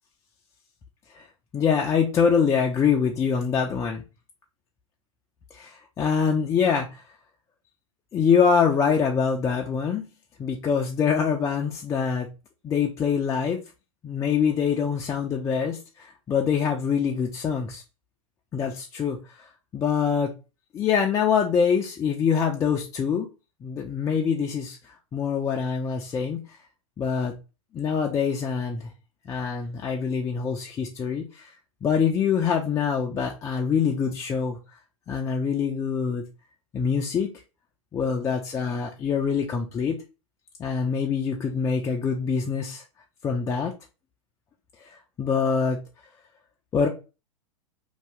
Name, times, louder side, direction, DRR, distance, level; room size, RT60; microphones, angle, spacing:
voice 1, 1.5-4.0 5.5-7.0 8.1-10.0 10.4-12.3 12.6-13.6 14.0-17.8 18.5-20.3 20.7-23.3 23.6-26.6 27.0-27.3 27.7-28.9 29.3-31.5 31.8-34.6 35.1-36.2 36.7-37.3 37.9-40.0 40.6-42.8 43.2-43.7 44.8-45.8 46.7-46.9, left 6 dB, 15° left, 0 dB, 0.3 m, -25 dB
2.7 x 2.3 x 3.3 m, 0.30 s
figure-of-eight pair, 100°, 18 cm